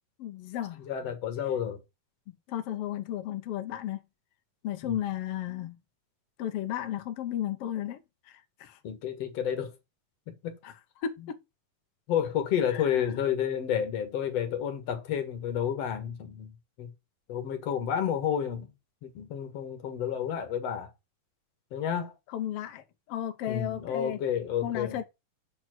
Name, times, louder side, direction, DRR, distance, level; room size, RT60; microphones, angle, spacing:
voice 1, 0.2-0.8 2.3-4.0 4.6-5.7 6.4-8.8 10.6-10.7 11.0-11.4 12.7-12.9 22.3-24.2 24.6-25.0, left 11 dB, 80° left, 1.3 m, -34 dB
voice 2, 0.9-1.8 4.8-5.1 8.8-9.7 10.3-10.6 11.2-11.3 12.1-16.5 16.8-16.9 17.3-18.7 19.0-20.9 21.7-22.1 23.5-25.0, left 9 dB, 55° left, 2.4 m, -30 dB
7.8 x 4.4 x 6.1 m
omnidirectional pair, 3.9 m